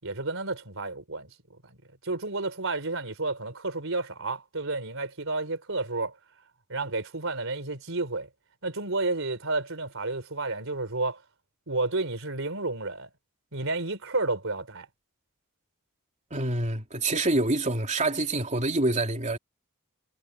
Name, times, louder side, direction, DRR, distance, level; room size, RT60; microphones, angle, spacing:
voice 1, 0.0-1.3 1.6-1.8 2.0-6.1 6.7-8.3 8.6-11.2 11.7-13.1 13.5-14.9, right 3 dB, 65° right, 4.4 m, -31 dB
voice 2, 16.3-19.4, right 2 dB, 35° right, 3.4 m, -26 dB
head